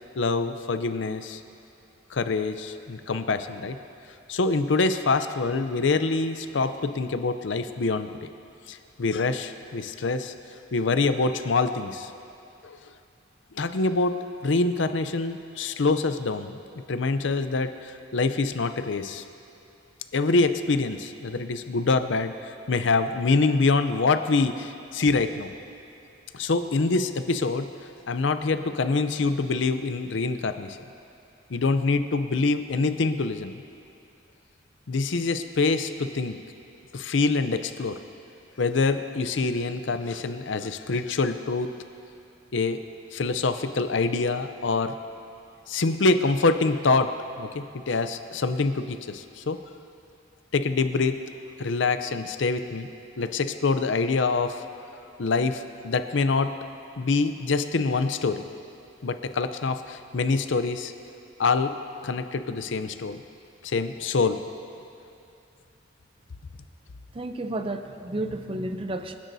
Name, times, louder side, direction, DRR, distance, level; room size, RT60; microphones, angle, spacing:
voice 1, 0.2-1.4 2.1-3.8 4.3-8.3 8.7-10.3 10.7-12.1 12.6-12.8 13.5-14.2 14.4-16.6 16.9-19.2 20.1-25.5 26.3-30.8 31.5-33.6 34.9-36.4 36.9-38.0 38.6-41.7 42.5-42.8 43.1-45.0 45.7-47.1 47.4-49.6 50.5-51.2 51.6-52.9 53.2-54.6 55.2-56.5 57.0-58.4 59.0-60.9 61.4-61.7 62.0-63.2 63.6-64.4, left 3 dB, 65° left, 10 dB, 0.6 m, -25 dB
voice 2, 67.2-69.1, right 1 dB, 30° right, 7 dB, 0.5 m, -31 dB
26.5 x 10.0 x 2.7 m, 2.6 s
head